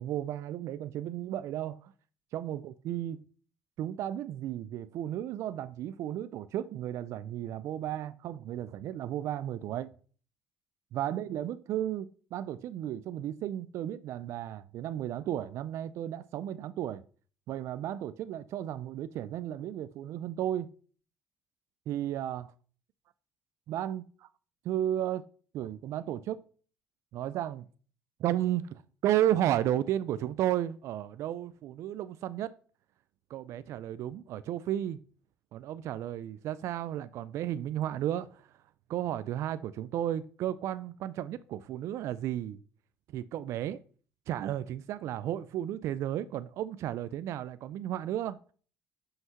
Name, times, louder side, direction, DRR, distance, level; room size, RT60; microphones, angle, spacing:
voice 1, 0.0-1.9 2.3-3.2 3.8-9.9 10.9-17.0 17.5-20.7 21.9-22.5 23.7-24.3 24.6-25.2 25.5-26.4 27.1-27.6 28.2-32.5 33.3-35.0 35.5-38.5 38.9-42.6 43.1-43.8 44.3-48.4, right 12 dB, 65° right, 0.4 m, -33 dB
5.8 x 5.5 x 5.7 m
cardioid pair, 110°, 5 cm